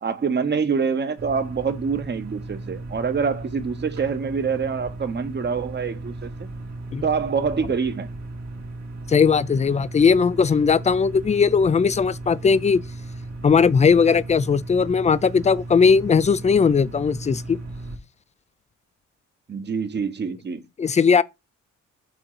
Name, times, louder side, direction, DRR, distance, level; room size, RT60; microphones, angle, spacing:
voice 1, 0.0-6.5 7.0-8.1 19.5-20.6, right 5 dB, 35° right, 1.1 m, -25 dB
sound 1, 1.2-18.0, right 2 dB, 65° right, 2.0 m, -36 dB
voice 2, 9.1-12.8 13.4-17.6 20.8-21.2, left 5 dB, 25° left, 0.4 m, -18 dB
6.2 x 3.8 x 4.8 m
cardioid pair, 90°, 30 cm